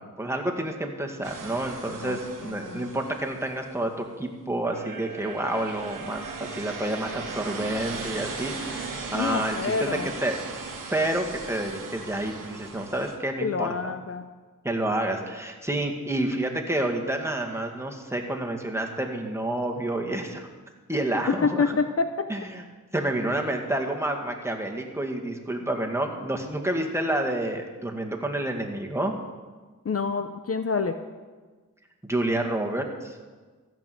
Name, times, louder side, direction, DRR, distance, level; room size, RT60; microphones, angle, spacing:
voice 1, 0.0-9.9 10.2-10.4 10.9-13.9 14.6-20.5 20.9-21.8 22.3-22.6 22.9-29.1 32.0-33.2, right 1 dB, 10° right, 1 dB, 2.0 m, -29 dB
sound 1, 1.2-3.9 4.7-13.2, right 4 dB, 80° right, 1.6 m, -38 dB
voice 2, 2.0-2.9 9.1-10.1 13.4-14.2 21.3-22.3 29.8-31.0, left 5 dB, 50° left, 9 dB, 0.7 m, -27 dB
14.5 x 6.1 x 7.8 m, 1.4 s
cardioid pair, 50°, 32 cm